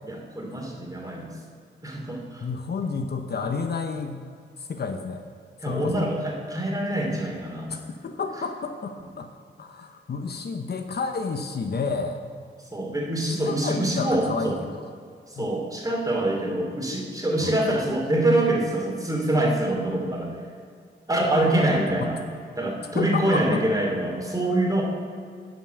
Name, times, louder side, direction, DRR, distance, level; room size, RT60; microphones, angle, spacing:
voice 1, 0.0-1.3 1.8-2.5 5.6-7.8 12.7-14.6 15.3-20.4 21.1-22.2 22.6-24.8, right 1 dB, 20° right, -1 dB, 2.7 m, -25 dB
voice 2, 2.4-4.3 4.6-5.2 5.6-6.1 7.7-9.3 9.6-12.2 13.2-14.9 15.4-15.5 17.4-17.6 21.3-22.1 22.9-23.6, left 4 dB, 55° left, 6 dB, 0.8 m, -31 dB
11.5 x 5.7 x 8.1 m, 2.2 s
wide cardioid pair, 95°, 20 cm